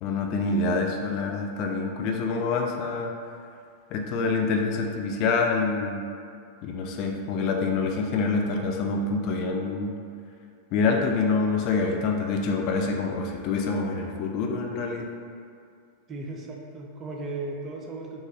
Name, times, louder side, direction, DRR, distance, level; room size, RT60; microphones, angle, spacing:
voice 1, 0.0-3.1 3.9-6.0 6.6-10.0 10.7-15.1, left 4 dB, 40° left, 2 dB, 0.3 m, -26 dB
voice 2, 16.1-18.2, right 2 dB, 25° right, 0 dB, 0.5 m, -36 dB
4.1 x 2.3 x 3.0 m, 2.4 s
figure-of-eight pair, 90°, 0 cm